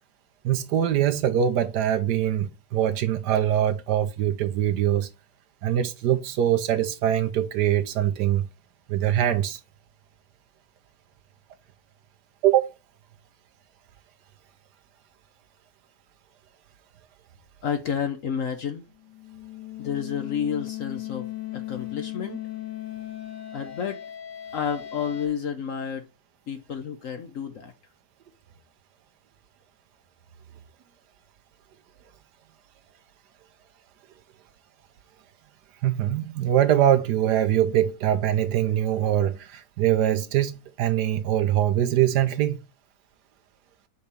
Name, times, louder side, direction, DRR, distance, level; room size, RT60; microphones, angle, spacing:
voice 1, 0.4-5.1 5.6-8.4 8.9-9.6 12.4-12.7 35.8-42.6, right 11 dB, 70° right, 1.2 m, -23 dB
voice 2, 17.6-18.8 19.8-21.3 21.5-22.4 23.5-24.0 24.5-26.1 26.5-27.7, left 7 dB, 60° left, 1.0 m, -30 dB
sound 1, 19.0-25.3, left 13 dB, 75° left, 2.0 m, -37 dB
5.5 x 4.3 x 5.2 m
omnidirectional pair, 2.0 m